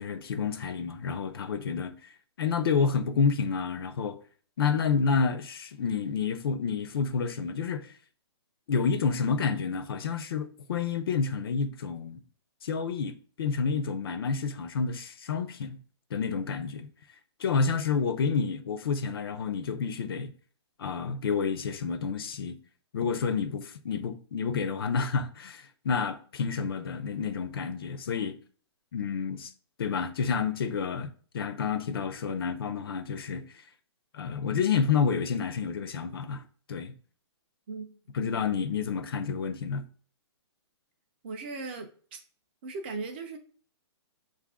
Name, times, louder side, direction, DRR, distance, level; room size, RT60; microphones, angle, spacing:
voice 1, 0.0-4.2 4.6-7.9 8.7-12.2 12.6-15.8 16.1-16.9 17.4-20.3 20.8-22.6 22.9-28.4 28.9-29.5 29.8-33.6 34.1-36.4 36.7-36.9 38.1-39.8, left 5 dB, 55° left, 0.5 m, -29 dB
voice 2, 41.2-42.2 42.6-43.4, right 3 dB, 25° right, 0.4 m, -38 dB
4.6 x 2.4 x 3.5 m
hypercardioid pair, 170°, 15 cm